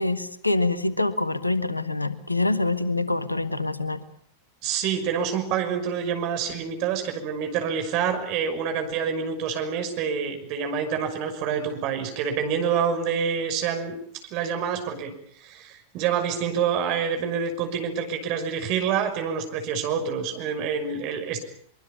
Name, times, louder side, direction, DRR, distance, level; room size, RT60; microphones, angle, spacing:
voice 1, 0.0-4.0, left 2 dB, 85° left, 13 dB, 1.6 m, -25 dB
voice 2, 4.6-14.0 14.3-21.4, right 7 dB, 40° right, 6 dB, 5.9 m, -27 dB
24.5 x 23.5 x 6.9 m, 0.66 s
figure-of-eight pair, 90°, 0 cm